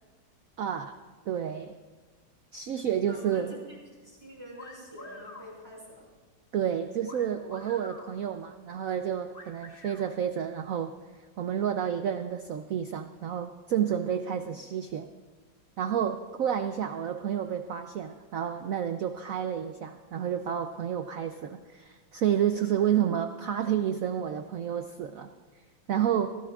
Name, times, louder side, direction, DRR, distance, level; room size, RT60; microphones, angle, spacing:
voice 1, 0.6-0.9 1.3-1.8 2.5-3.5 6.5-10.9 11.4-15.1 15.8-25.3 25.9-26.3, right 9 dB, 90° right, 7 dB, 0.7 m, -30 dB
voice 2, 3.1-3.8 4.0-6.1 14.3-14.5 22.7-23.1, equal, 10° right, -4 dB, 5.5 m, -46 dB
sound 1, 4.6-5.5 7.1-8.1 9.3-10.1, left 2 dB, 25° left, 2.0 m, -47 dB
24.0 x 16.5 x 2.4 m, 1.4 s
omnidirectional pair, 2.2 m